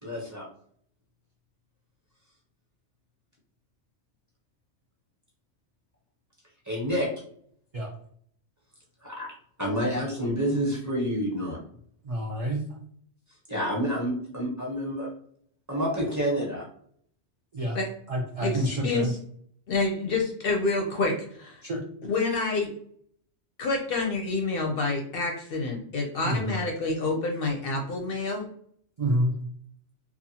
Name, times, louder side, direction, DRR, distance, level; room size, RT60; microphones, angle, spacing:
voice 1, 0.0-0.5 6.7-7.1 9.0-11.6 13.5-15.1 15.7-16.7, equal, 20° right, -4 dB, 0.7 m, -28 dB
voice 2, 12.0-12.6 17.5-17.8 18.1-19.1 21.6-21.8 26.2-26.5 29.0-29.3, equal, 60° right, -1 dB, 0.3 m, -28 dB
voice 3, 18.4-19.2 19.7-21.6 22.0-22.7 23.6-28.5, left 3 dB, 60° left, 2 dB, 0.6 m, -28 dB
2.7 x 2.3 x 2.7 m, 0.62 s
omnidirectional pair, 1.2 m